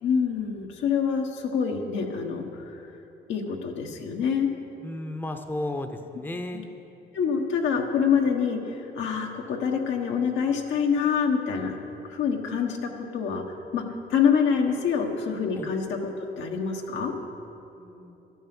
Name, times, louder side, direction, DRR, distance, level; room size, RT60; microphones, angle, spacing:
voice 1, 0.0-2.4 3.3-4.5 6.5-6.6 7.1-11.8 12.1-13.4 13.7-13.8 14.1-16.1 16.4-17.1, left 6 dB, 80° left, 2 dB, 1.3 m, -26 dB
voice 2, 4.8-6.6 15.6-15.7 17.8-18.2, left 1 dB, 10° left, 6 dB, 0.8 m, -34 dB
12.0 x 9.2 x 6.1 m, 3.0 s
cardioid pair, 95°, 19 cm